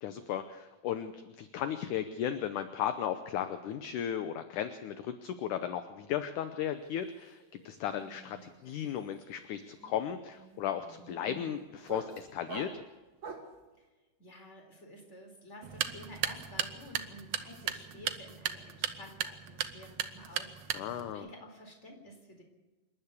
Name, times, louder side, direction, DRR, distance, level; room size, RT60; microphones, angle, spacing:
voice 1, 0.0-7.4 7.7-12.7 20.7-21.3, left 10 dB, 70° left, 10 dB, 2.2 m, -35 dB
sound 1, 6.8-7.1 7.4-13.6, right 3 dB, 35° right, 2.5 m, -47 dB
voice 2, 14.2-22.4, left 1 dB, 20° left, 3 dB, 4.1 m, -51 dB
sound 2, 15.6-21.1, right 9 dB, 65° right, 1.8 m, -37 dB
27.0 x 12.0 x 8.3 m, 1.2 s
omnidirectional pair, 4.1 m